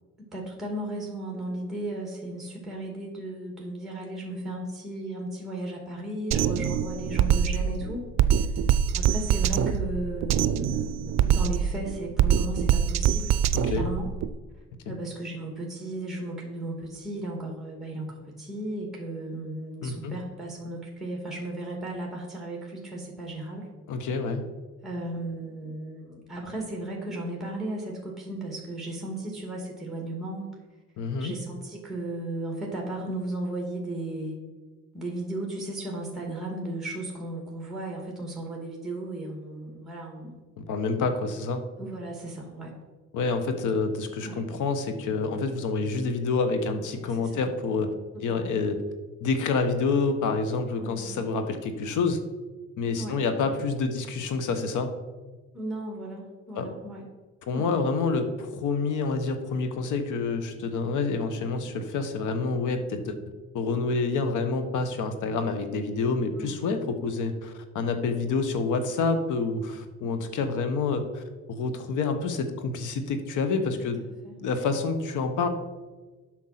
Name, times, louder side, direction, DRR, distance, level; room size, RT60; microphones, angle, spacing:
voice 1, 0.3-8.0 8.4-8.5 8.9-13.4 13.7-14.1 14.9-23.7 24.8-30.5 31.2-34.4 34.9-40.4 41.8-42.7 44.2-44.4 47.2-47.4 48.1-48.5 50.8-51.3 53.0-53.5 55.5-57.1 57.5-57.7 66.3-66.6 74.0-74.4, right 1 dB, ahead, -1 dB, 2.1 m, -35 dB
Drum kit, 6.3-14.3, right 9 dB, 60° right, 0.5 m, -24 dB
voice 2, 13.5-13.9 14.9-15.0 19.8-20.1 23.9-24.4 31.0-31.3 40.6-41.6 43.1-47.9 48.2-48.8 49.2-52.2 52.8-54.9 56.5-56.7 57.5-63.2 63.5-71.2 71.5-74.0 74.4-75.5, left 4 dB, 85° left, 8 dB, 1.1 m, -28 dB
7.7 x 6.3 x 5.8 m, 1.3 s
cardioid pair, 90°, 30 cm